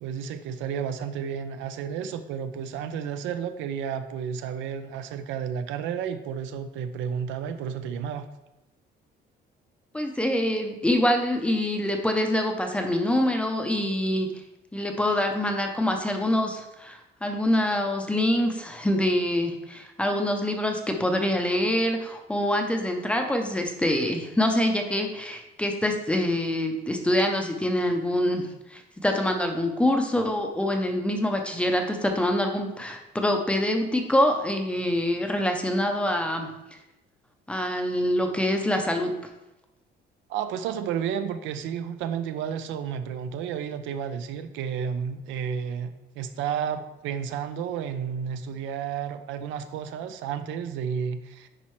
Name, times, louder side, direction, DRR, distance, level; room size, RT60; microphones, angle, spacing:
voice 1, 0.0-8.2 40.3-51.5, right 7 dB, 90° right, 10 dB, 0.6 m, -32 dB
voice 2, 9.9-14.3 14.7-36.8 37.5-39.1, left 1 dB, 5° left, 4 dB, 0.5 m, -25 dB
10.0 x 4.2 x 3.1 m, 0.95 s
cardioid pair, 175°, 19 cm